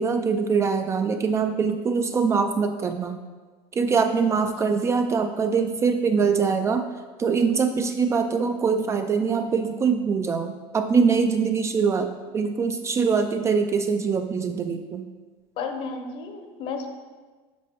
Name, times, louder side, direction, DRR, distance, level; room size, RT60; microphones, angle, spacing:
voice 1, 0.0-3.2 3.7-6.9 7.2-15.1, right 5 dB, 25° right, 7 dB, 0.3 m, -23 dB
voice 2, 15.6-16.9, left 4 dB, 45° left, 6 dB, 0.8 m, -33 dB
8.2 x 5.3 x 3.0 m, 1.4 s
supercardioid pair, 135°, 12 cm